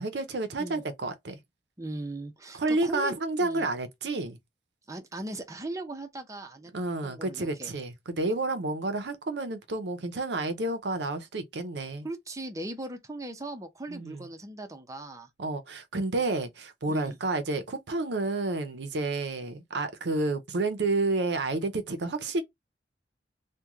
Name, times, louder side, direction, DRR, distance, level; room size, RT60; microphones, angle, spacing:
voice 1, 0.0-1.4 2.5-4.4 6.7-12.1 13.9-14.2 15.4-22.4, right 2 dB, 70° right, 0.6 m, -30 dB
voice 2, 1.8-3.7 4.9-6.7 7.0-7.8 12.0-15.3 16.1-16.2 16.9-17.2, right 2 dB, 20° right, 0.6 m, -39 dB
3.0 x 2.2 x 3.6 m
head